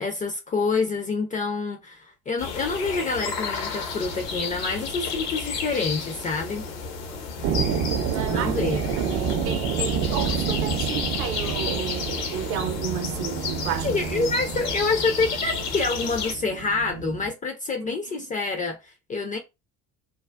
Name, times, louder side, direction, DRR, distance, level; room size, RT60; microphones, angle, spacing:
voice 1, 0.0-6.7 8.3-9.0 13.8-19.4, left 3 dB, 20° left, 0.3 m, -27 dB
sound 1, 2.4-16.3, left 5 dB, 75° left, 0.8 m, -32 dB
sound 2, 7.4-17.3, right 7 dB, 40° right, 0.4 m, -29 dB
voice 2, 8.1-14.3 17.8-18.3, right 7 dB, 65° right, 0.7 m, -33 dB
3.3 x 2.1 x 2.3 m
figure-of-eight pair, 55°, 47 cm